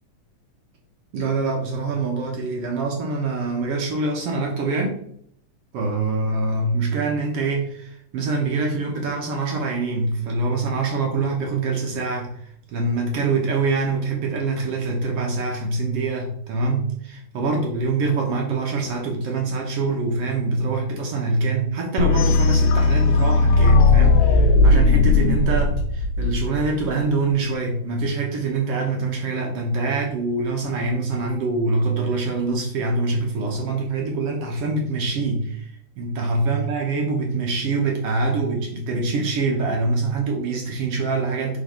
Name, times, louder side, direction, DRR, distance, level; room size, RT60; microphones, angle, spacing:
voice 1, 1.1-5.0 5.7-12.3 12.7-35.7 36.0-41.6, right 3 dB, 65° right, 0 dB, 1.7 m, -24 dB
sound 1, 22.0-26.9, left 3 dB, 80° left, 1.9 m, -17 dB
4.9 x 3.8 x 5.3 m, 0.67 s
omnidirectional pair, 3.6 m